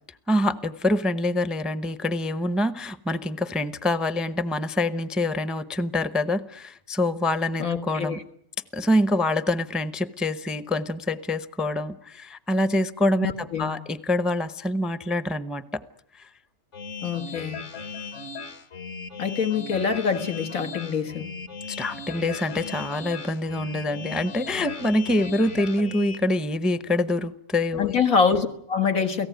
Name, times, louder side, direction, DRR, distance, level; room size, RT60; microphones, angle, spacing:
voice 1, 0.3-8.2 8.7-15.8 21.7-28.0, left 1 dB, ahead, 14 dB, 0.6 m, -25 dB
voice 2, 7.6-8.2 13.2-13.8 17.0-17.6 19.2-21.3 27.8-29.3, left 6 dB, 80° left, 6 dB, 2.1 m, -25 dB
sound 1, 16.7-26.2, left 4 dB, 60° left, 1.8 m, -37 dB
29.0 x 17.5 x 9.4 m, 0.71 s
omnidirectional pair, 1.4 m